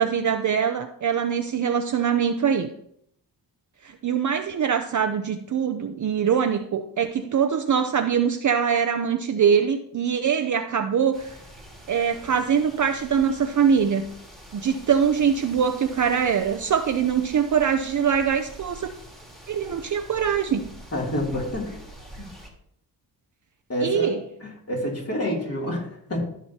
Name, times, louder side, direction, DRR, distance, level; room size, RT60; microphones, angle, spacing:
voice 1, 0.0-2.7 3.8-11.4 11.9-14.1 14.5-18.9 19.5-20.7 23.8-24.2, right 7 dB, 45° right, 7 dB, 0.6 m, -23 dB
sound 1, 11.1-22.5, right 1 dB, ahead, 2.1 m, -45 dB
voice 2, 20.9-21.8 22.1-22.3 23.7-24.1 24.4-26.2, equal, 35° left, -2 dB, 2.8 m, -28 dB
14.5 x 6.2 x 2.8 m, 0.71 s
wide cardioid pair, 110°, 43 cm